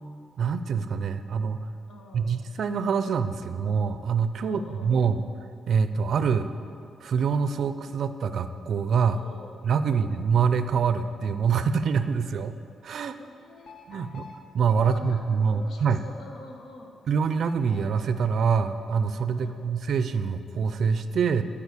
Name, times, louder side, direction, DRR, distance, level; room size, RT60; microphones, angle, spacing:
voice 1, 0.4-1.7 2.1-5.2 5.7-6.5 7.0-9.2 9.6-12.5 12.8-13.2 13.9-14.2 14.5-16.0 17.1-21.4, right 6 dB, 60° right, 11 dB, 0.4 m, -25 dB
voice 2, 1.9-2.4 4.4-5.1 9.1-10.2 13.2-14.3 14.8-17.0 19.4-19.8, left 2 dB, 80° left, 2 dB, 1.2 m, -47 dB
sound 1, 13.6-16.3 17.4-19.2, left 3 dB, 50° left, 0.9 m, -50 dB
11.0 x 4.9 x 6.7 m, 2.4 s
cardioid pair, 120°, 0 cm